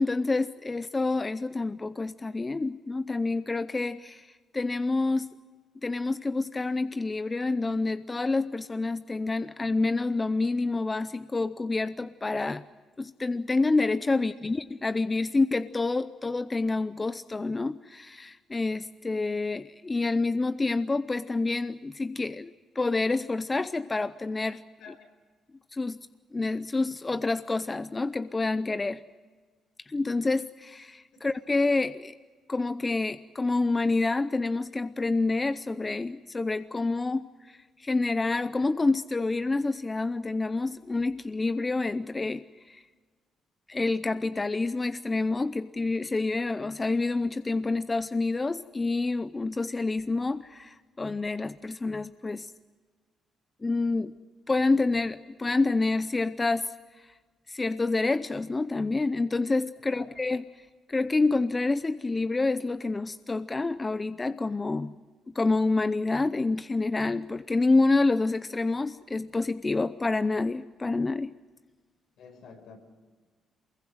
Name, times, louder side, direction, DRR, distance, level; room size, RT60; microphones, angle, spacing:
voice 1, 0.0-5.3 5.8-12.7 13.0-24.6 25.7-26.0 26.3-29.0 29.9-32.1 32.5-42.8 43.7-52.5 53.6-54.1 54.5-57.1 57.5-60.4 60.9-64.9 65.3-71.3, left 3 dB, 25° left, 13 dB, 0.6 m, -28 dB
voice 2, 72.2-72.8, left 5 dB, 75° left, 4 dB, 5.2 m, -49 dB
24.0 x 22.0 x 7.8 m, 1.4 s
cardioid pair, 90°, 0 cm